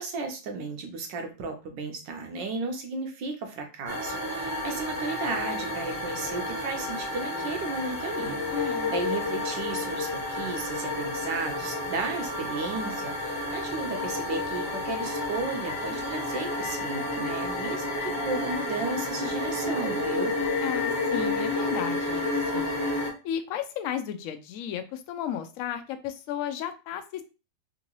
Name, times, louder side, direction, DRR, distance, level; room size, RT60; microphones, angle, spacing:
voice 1, 0.0-8.4 8.9-20.3, right 3 dB, 90° right, 4 dB, 1.5 m, -34 dB
sound 1, 3.9-23.1, left 2 dB, 15° left, 0.7 m, -30 dB
voice 2, 8.5-8.9 20.6-22.7 23.2-27.2, left 9 dB, 75° left, 8 dB, 0.7 m, -34 dB
3.7 x 2.7 x 2.9 m, 0.31 s
omnidirectional pair, 1.9 m